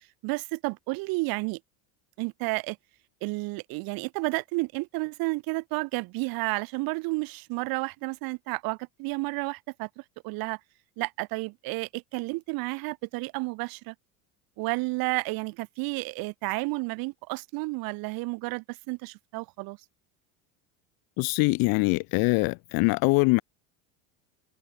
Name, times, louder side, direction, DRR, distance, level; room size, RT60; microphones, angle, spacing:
voice 1, 0.2-1.6 2.2-2.8 3.2-9.9 10.2-10.6 11.0-13.9 14.6-19.8, right 25 dB, 60° right, 6.0 m, -31 dB
voice 2, 21.2-23.4, left 28 dB, 65° left, 1.9 m, -23 dB
supercardioid pair, 135°, 39 cm